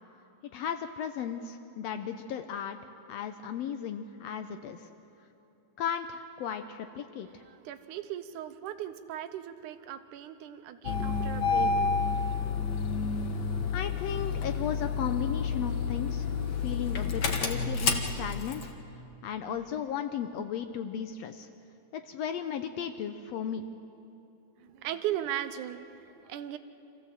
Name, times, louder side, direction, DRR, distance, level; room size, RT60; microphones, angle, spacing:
voice 1, 0.5-2.8 3.1-4.9 5.8-7.4 13.7-16.3 16.6-18.6 19.2-21.5 21.9-23.7, left 8 dB, 75° left, 8 dB, 1.6 m, -35 dB
voice 2, 7.3-12.0 24.6-26.6, right 11 dB, 85° right, 10 dB, 2.3 m, -37 dB
Engine starting, 10.8-18.7, left 5 dB, 50° left, 1.4 m, -30 dB
26.0 x 15.5 x 7.7 m, 3.0 s
omnidirectional pair, 3.5 m